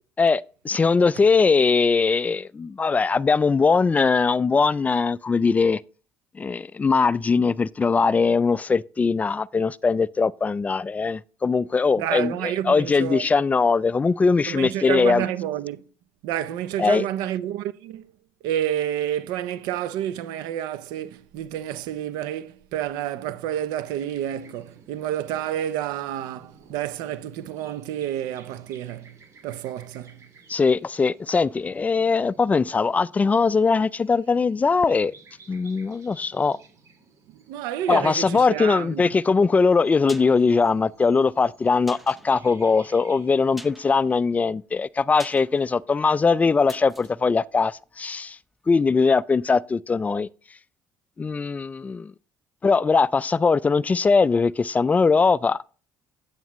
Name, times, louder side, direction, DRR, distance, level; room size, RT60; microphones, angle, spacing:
voice 1, 0.2-5.8 6.4-15.3 16.8-17.1 30.5-35.1 35.5-36.6 37.9-48.4 48.7-50.3 51.2-52.1 52.6-55.6, left 4 dB, 20° left, 0.3 m, -21 dB
voice 2, 12.0-13.3 14.5-15.8 16.2-18.1 18.4-29.2 29.4-30.2 37.5-39.1, right 11 dB, 85° right, 0.6 m, -29 dB
sound 1, 23.9-43.6, right 4 dB, 50° right, 2.1 m, -54 dB
sound 2, 40.0-48.5 48.8-48.9, equal, ahead, 0.8 m, -48 dB
9.2 x 8.7 x 3.0 m
supercardioid pair, 85°, 7 cm